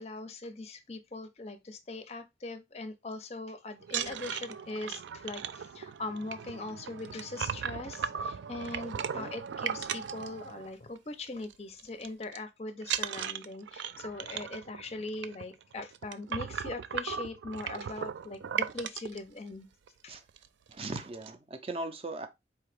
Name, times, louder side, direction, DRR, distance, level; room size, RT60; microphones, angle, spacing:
voice 1, 0.0-19.7 20.0-20.2, left 2 dB, 35° left, 0.5 m, -41 dB
sound 1, 3.8-11.0 11.3-11.5 11.8-12.4 12.8-19.2 19.9-20.0 20.3-20.5 20.7-21.3, right 7 dB, 90° right, 0.4 m, -37 dB
voice 2, 20.7-22.3, right 2 dB, 30° right, 0.5 m, -39 dB
4.4 x 2.9 x 3.2 m
head